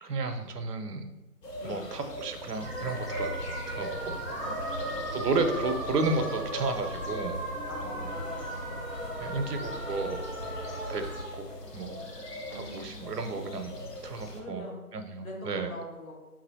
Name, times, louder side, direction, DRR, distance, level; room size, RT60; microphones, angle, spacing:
voice 1, 0.0-1.1 1.6-3.4 3.7-4.2 5.1-7.4 9.2-10.2 10.9-11.1 11.3-11.5 11.7-12.0 12.5-13.8 14.0-14.6 14.9-15.7, right 3 dB, 90° right, 7 dB, 0.5 m, -32 dB
sound 1, 1.4-14.4, left 1 dB, 90° left, 0.8 m, -40 dB
voice 2, 1.6-1.9 4.4-5.7 7.7-8.8 12.5-13.0 14.3-14.8 15.2-16.1, left 1 dB, 60° left, -3 dB, 1.0 m, -44 dB
sound 2, 2.5-11.2, right 1 dB, 45° left, 1.3 m, -37 dB
3.0 x 2.4 x 2.6 m, 1.1 s
figure-of-eight pair, 175°, 46 cm